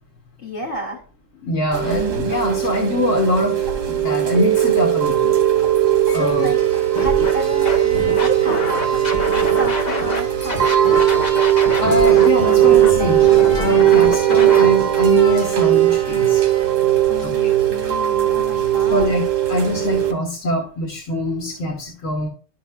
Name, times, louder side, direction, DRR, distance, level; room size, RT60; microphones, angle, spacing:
voice 1, 0.4-1.0 6.1-6.6 6.9-8.6 8.9-11.0 17.1-19.2, left 1 dB, 55° left, -1 dB, 3.2 m, -31 dB
voice 2, 1.4-5.4 6.1-6.5 11.8-16.4 17.2-17.3 18.9-19.2 19.5-22.3, left 1 dB, 70° left, 1 dB, 1.7 m, -23 dB
Chime / Rain, 1.7-20.1, right 12 dB, 75° right, 1.5 m, -18 dB
sound 1, 5.9-6.0 6.3-16.7 17.2-17.4, right 3 dB, 60° right, 3.0 m, -34 dB
Scratching (performance technique), 6.9-7.3 7.6-10.2 10.5-14.7, left 2 dB, 35° left, 1.2 m, -25 dB
12.5 x 5.8 x 2.3 m, 0.41 s
omnidirectional pair, 1.3 m